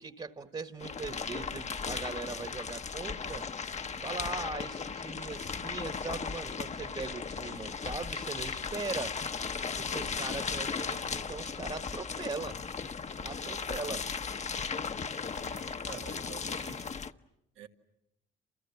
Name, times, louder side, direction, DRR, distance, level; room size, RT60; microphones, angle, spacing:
voice 1, 0.0-3.5 4.0-9.2 9.8-12.6 13.2-14.1, right 4 dB, 30° right, 1.5 m, -40 dB
sound 1, 0.8-17.1, left 5 dB, 35° left, 0.9 m, -36 dB
voice 2, 15.0-17.0 17.6-17.7, right 8 dB, 90° right, 2.0 m, -49 dB
29.0 x 29.0 x 7.1 m
cardioid pair, 90°, 20 cm